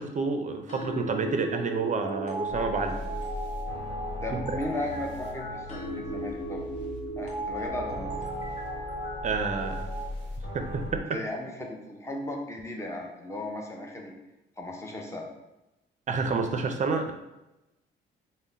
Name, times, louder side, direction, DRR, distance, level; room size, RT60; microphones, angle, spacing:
voice 1, 0.0-2.9 4.3-4.4 9.2-9.9 10.5-11.0 16.1-17.1, right 4 dB, 40° right, 5 dB, 0.5 m, -29 dB
sound 1, 0.7-10.1, right 1 dB, 40° left, 1.0 m, -36 dB
sound 2, 2.5-11.0, left 1 dB, 65° left, 1.1 m, -39 dB
voice 2, 4.2-6.6 7.2-8.1 11.1-14.1 14.6-15.3, left 1 dB, 15° left, 0 dB, 0.7 m, -36 dB
3.7 x 2.1 x 3.9 m, 0.97 s
cardioid pair, 90°, 20 cm